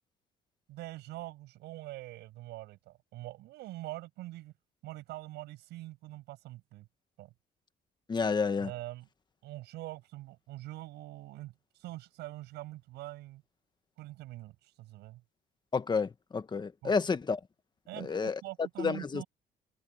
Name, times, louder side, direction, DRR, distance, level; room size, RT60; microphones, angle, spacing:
voice 1, 0.7-4.5 4.8-6.9 7.2-7.3 8.6-9.1 9.4-13.4 14.0-15.2 16.8-16.9 17.9-19.3, right 17 dB, 85° right, 7.4 m, -44 dB
voice 2, 8.1-8.7 15.7-17.4 18.0-18.4 18.8-19.2, left 5 dB, 25° left, 1.5 m, -30 dB
cardioid pair, 110°, 17 cm